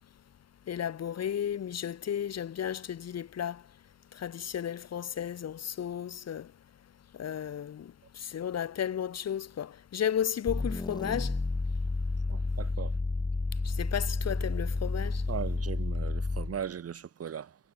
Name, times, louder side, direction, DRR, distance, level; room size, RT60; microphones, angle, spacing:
voice 1, 0.7-3.6 4.1-6.5 7.1-11.4 13.6-15.2, left 9 dB, 55° left, 3.3 m, -34 dB
sound 1, 10.5-16.6, left 3 dB, 15° left, 0.9 m, -31 dB
voice 2, 12.3-12.9 15.3-17.6, right 8 dB, 50° right, 3.0 m, -38 dB
cardioid pair, 90°, 30 cm